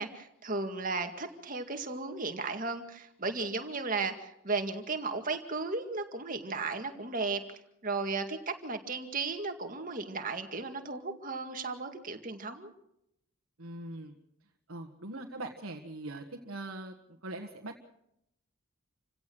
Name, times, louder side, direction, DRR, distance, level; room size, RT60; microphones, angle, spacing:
voice 1, 0.0-12.7, right 3 dB, 40° right, 6 dB, 2.1 m, -35 dB
voice 2, 13.6-14.1 14.7-16.9 17.2-17.8, right 2 dB, 75° right, 2 dB, 1.7 m, -41 dB
28.0 x 17.0 x 6.4 m, 0.79 s
head